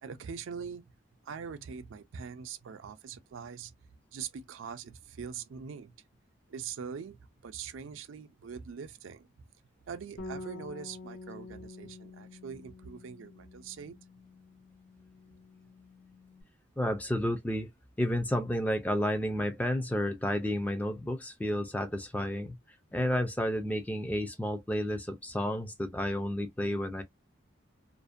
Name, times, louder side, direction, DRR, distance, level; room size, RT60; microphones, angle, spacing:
voice 1, 0.0-0.8 1.2-3.7 4.1-5.9 6.5-9.3 9.9-14.0, right 6 dB, 85° right, 0.4 m, -42 dB
Bass guitar, 10.2-16.4, left 3 dB, 80° left, 1.0 m, -48 dB
voice 2, 16.8-17.7 18.0-22.6 22.9-27.0, left 1 dB, 10° left, 0.3 m, -31 dB
2.5 x 2.1 x 2.4 m
head